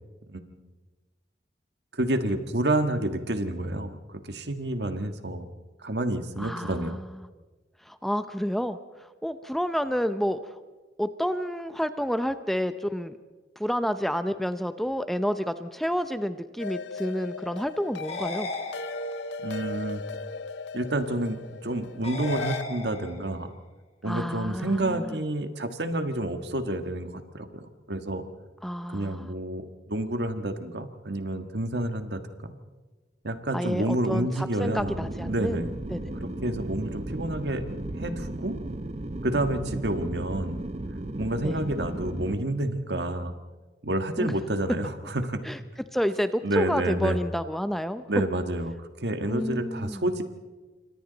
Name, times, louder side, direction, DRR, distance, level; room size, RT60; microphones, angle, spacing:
voice 1, 0.3-0.6 1.9-5.5 5.8-7.0 19.4-20.0 20.7-23.5 24.0-28.2 28.9-32.6 33.2-35.0 35.2-35.7 36.2-37.7 38.0-38.6 39.2-40.6 41.2-43.3 43.8-45.4 46.4-47.2 48.1-50.2, right 1 dB, 70° right, 8 dB, 1.6 m, -29 dB
voice 2, 6.4-7.0 7.9-10.5 11.0-13.2 13.6-18.5 24.0-25.2 28.6-29.2 33.5-35.6 35.9-36.0 41.4-41.5 44.2-44.3 45.4-45.6 45.9-48.0 49.3-50.0, equal, ahead, 10 dB, 0.6 m, -29 dB
sound 1, 16.6-22.6, left 3 dB, 75° left, 0.6 m, -37 dB
sound 2, 18.0-19.4 22.0-23.4, left 2 dB, 35° left, 2.7 m, -37 dB
sound 3, 34.8-42.4, right 1 dB, 40° right, 0.8 m, -35 dB
27.5 x 25.0 x 4.1 m, 1.3 s
head